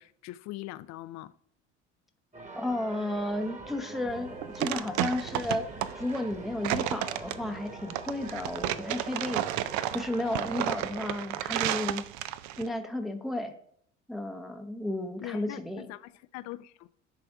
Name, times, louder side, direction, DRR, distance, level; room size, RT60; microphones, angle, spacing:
voice 1, 0.0-1.3 15.2-15.6 15.9-16.9, left 16 dB, 50° left, 16 dB, 0.5 m, -41 dB
sound 1, 2.3-11.0, right 2 dB, 20° right, 1.4 m, -44 dB
voice 2, 2.5-5.6 6.0-9.4 9.9-12.0 12.6-13.5 14.1-15.9, left 1 dB, ahead, 5 dB, 0.7 m, -33 dB
sound 2, 4.1-12.7, right 13 dB, 55° right, 0.5 m, -32 dB
10.0 x 3.4 x 3.5 m, 0.64 s
hypercardioid pair, 65°, 35 cm